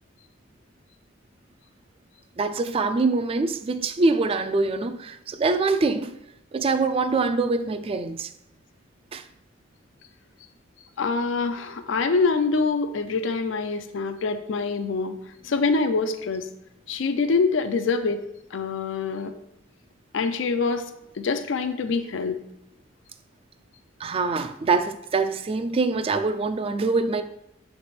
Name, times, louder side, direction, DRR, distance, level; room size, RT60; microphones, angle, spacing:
voice 1, 2.4-6.2 6.5-8.3 9.1-9.2 24.0-27.2, right 3 dB, 30° right, 0.3 m, -24 dB
voice 2, 11.0-15.2 15.4-16.5 16.9-19.3 20.1-20.9 21.2-22.4, left 4 dB, 75° left, 0.5 m, -25 dB
6.8 x 3.3 x 4.2 m
head